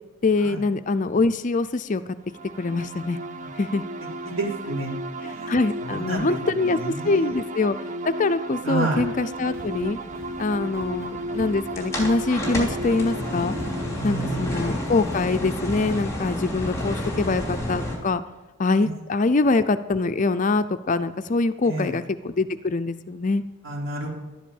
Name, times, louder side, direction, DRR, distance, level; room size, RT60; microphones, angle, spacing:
voice 1, 0.2-2.0 2.6-3.2 3.6-3.9 5.2-7.8 8.2-10.0 10.4-13.5 14.0-18.2 18.6-23.4, left 3 dB, 35° left, 11 dB, 0.5 m, -24 dB
sound 1, 2.3-15.8, right 1 dB, 35° right, 0.7 m, -35 dB
voice 2, 4.3-5.5 5.8-6.4 6.6-7.4 8.6-9.0 14.0-14.7 21.6-21.9 23.6-24.1, right 2 dB, 70° right, -2 dB, 3.9 m, -30 dB
Walk footsteps, 8.9-9.2 9.5-9.8 10.1-10.4 10.7-11.1 11.3-12.2 12.5-12.9 13.2-13.3 13.5-14.1 14.6-14.7 15.0-15.3, left 1 dB, 15° right, 4.0 m, -43 dB
sound 2, 9.4-18.0, left 1 dB, 15° left, 2.9 m, -31 dB
12.0 x 10.5 x 7.1 m, 1.1 s
head